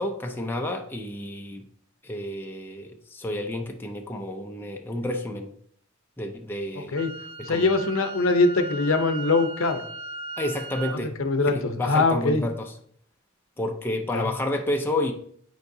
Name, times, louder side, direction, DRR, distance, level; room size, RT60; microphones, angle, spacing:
voice 1, 0.0-1.7 2.0-5.5 6.2-7.0 7.4-7.7 10.4-11.1 11.6-12.7 13.6-15.1, left 1 dB, 10° left, 3 dB, 0.5 m, -30 dB
Wind instrument woodwind instrument, 7.0-11.0, right 3 dB, 70° right, 0.9 m, -37 dB
voice 2, 7.4-9.8 10.9-12.4 14.1-14.3, left 3 dB, 65° left, 7 dB, 0.7 m, -23 dB
9.3 x 4.7 x 2.7 m, 0.63 s
head